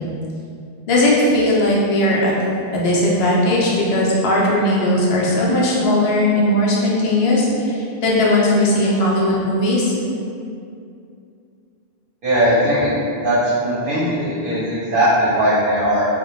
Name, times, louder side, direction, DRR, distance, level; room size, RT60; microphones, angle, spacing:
voice 1, 0.9-2.3 2.7-9.9, left 1 dB, 75° left, -5 dB, 0.8 m, -17 dB
voice 2, 12.2-12.9 13.2-16.1, equal, 60° right, -11 dB, 0.7 m, -18 dB
2.1 x 2.1 x 2.8 m, 2.5 s
omnidirectional pair, 1.1 m